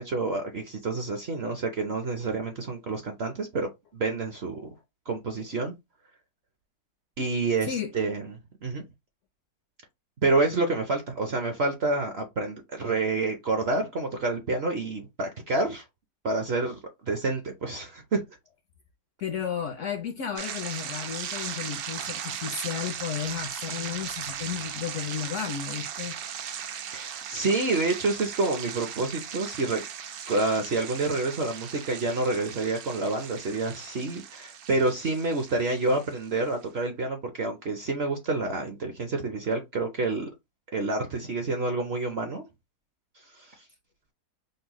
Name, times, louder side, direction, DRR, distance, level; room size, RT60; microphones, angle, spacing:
voice 1, 0.0-4.7 5.1-5.7 7.2-8.8 10.2-15.8 16.2-18.2 26.9-29.8 30.3-40.3 40.7-42.4 43.2-43.6, right 3 dB, 55° right, 0.7 m, -28 dB
voice 2, 19.2-26.2, left 8 dB, 65° left, 0.8 m, -33 dB
sound 1, 20.4-36.5, right 8 dB, 70° right, 1.1 m, -38 dB
5.3 x 2.1 x 3.0 m
omnidirectional pair, 1.7 m